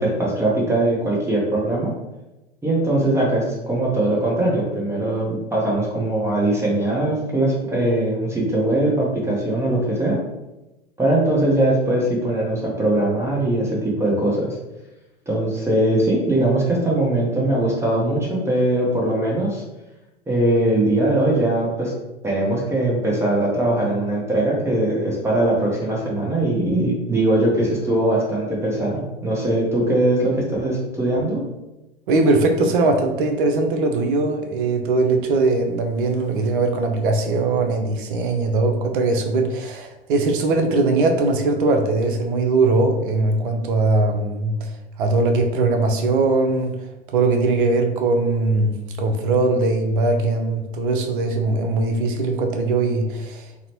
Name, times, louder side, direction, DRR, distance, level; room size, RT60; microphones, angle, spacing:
voice 1, 0.0-1.9 2.6-10.2 11.0-14.5 15.3-19.6 20.3-21.9 22.2-31.4, right 1 dB, 10° right, -4 dB, 0.7 m, -21 dB
voice 2, 32.1-44.7 45.0-46.8 47.1-53.7, right 3 dB, 55° right, 4 dB, 0.6 m, -20 dB
3.9 x 2.1 x 2.9 m, 0.99 s
figure-of-eight pair, 90°, 31 cm